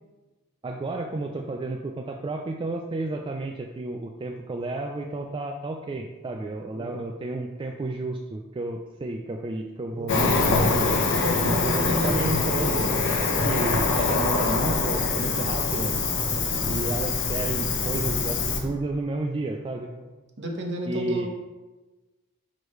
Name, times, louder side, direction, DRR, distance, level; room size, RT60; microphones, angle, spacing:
voice 1, 0.6-11.0 11.5-12.8 13.4-15.9 16.7-19.9 20.8-21.3, right 2 dB, 25° right, 2 dB, 0.3 m, -32 dB
voice 2, 6.7-7.1 9.9-10.3 11.2-12.4 19.8-20.1 20.4-21.3, equal, 50° right, 2 dB, 1.0 m, -32 dB
Cricket, 10.1-18.6, left 3 dB, 55° left, 0.9 m, -24 dB
6.2 x 4.9 x 3.1 m, 1.2 s
head